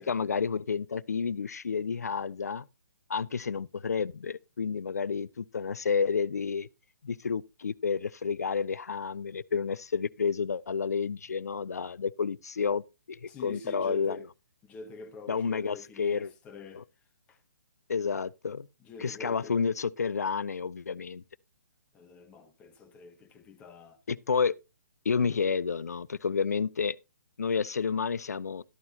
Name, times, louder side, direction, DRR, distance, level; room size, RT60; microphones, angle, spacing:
voice 1, 0.0-2.7 3.1-6.7 7.0-14.2 15.3-16.3 16.8-16.9 17.9-18.7 19.0-21.2 24.1-24.5 25.1-27.0 27.4-28.6, left 5 dB, 65° left, 0.4 m, -30 dB
voice 2, 13.3-14.3 14.6-16.8 17.3-17.4 18.8-19.6 21.9-24.0, left 4 dB, 15° left, 0.8 m, -46 dB
12.5 x 9.3 x 2.7 m
figure-of-eight pair, 130°, 9 cm